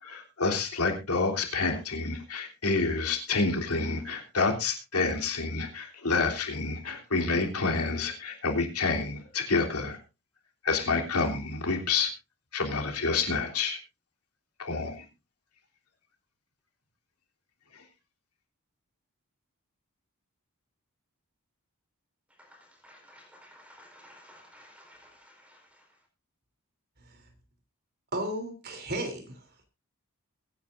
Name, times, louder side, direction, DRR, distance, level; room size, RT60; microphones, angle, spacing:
voice 1, 0.0-10.0 10.6-12.1 12.5-13.8 14.6-14.9, left 4 dB, 85° left, 3.3 m, -28 dB
voice 2, 22.4-26.0, equal, 5° right, 4.4 m, -55 dB
voice 3, 28.1-29.4, right 1 dB, 45° right, 3.2 m, -34 dB
22.5 x 9.8 x 2.6 m
head